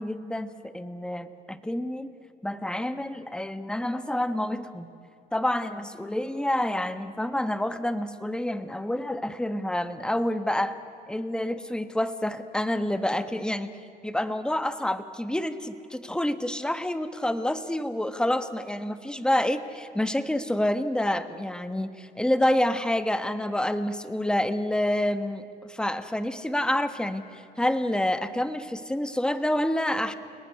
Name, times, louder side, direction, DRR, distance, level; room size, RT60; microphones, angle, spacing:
voice 1, 0.0-2.1 2.4-4.9 5.3-10.8 11.1-13.7 14.0-30.1, left 1 dB, 5° left, 11 dB, 1.4 m, -28 dB
29.5 x 19.0 x 9.5 m, 2.6 s
cardioid pair, 110°, 17 cm